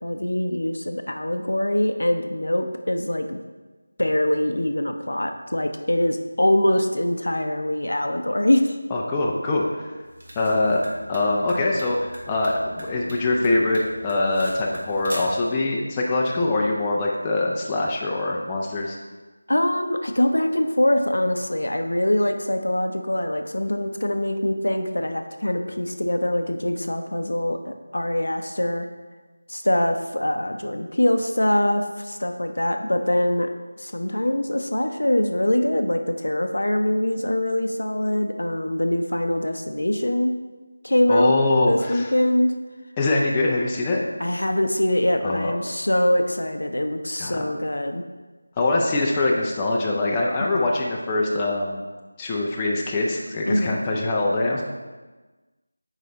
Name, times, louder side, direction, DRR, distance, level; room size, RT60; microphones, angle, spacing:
voice 1, 0.0-3.4 4.0-8.8 19.5-28.9 29.5-33.5 33.8-40.4 40.8-41.3 41.7-42.6 44.2-48.0 50.4-50.7 53.4-53.8, left 1 dB, 75° left, 6 dB, 0.6 m, -23 dB
voice 2, 8.9-9.9 10.4-10.8 11.1-19.0 41.1-42.1 43.0-44.0 45.2-45.5 47.2-47.4 48.6-51.8 52.2-54.6, left 2 dB, 15° left, -3 dB, 0.5 m, -23 dB
sound 1, 10.0-15.5, equal, 50° right, 1.3 m, -40 dB
6.5 x 4.9 x 3.9 m, 1.3 s
figure-of-eight pair, 165°, 0 cm